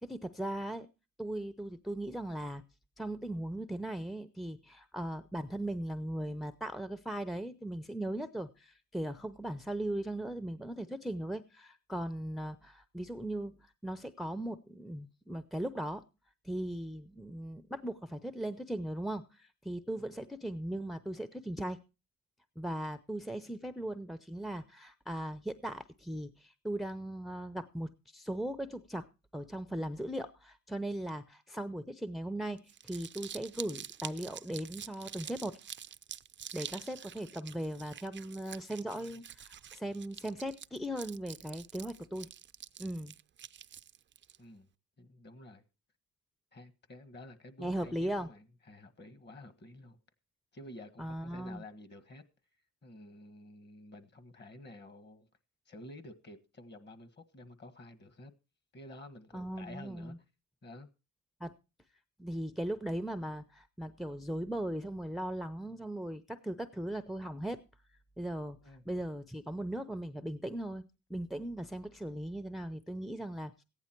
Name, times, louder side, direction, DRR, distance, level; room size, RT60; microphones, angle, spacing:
voice 1, 0.0-0.9 1.2-2.6 3.0-16.0 16.4-21.8 22.6-29.1 29.3-35.6 36.5-42.3 42.8-43.2 47.6-48.3 51.0-51.6 59.3-60.2 61.4-61.5 62.2-67.6 68.2-70.8 71.1-73.5, right 1 dB, ahead, 0.6 m, -38 dB
Crumpling crinkling, 32.6-44.4, right 9 dB, 40° right, 0.5 m, -47 dB
voice 2, 44.4-44.7 45.0-45.6 46.5-50.0 50.5-52.2 52.8-55.3 55.7-58.3 58.7-60.1 60.6-60.9 68.6-68.8, left 1 dB, 35° left, 1.6 m, -51 dB
14.5 x 9.7 x 4.5 m
cardioid pair, 90°, 30 cm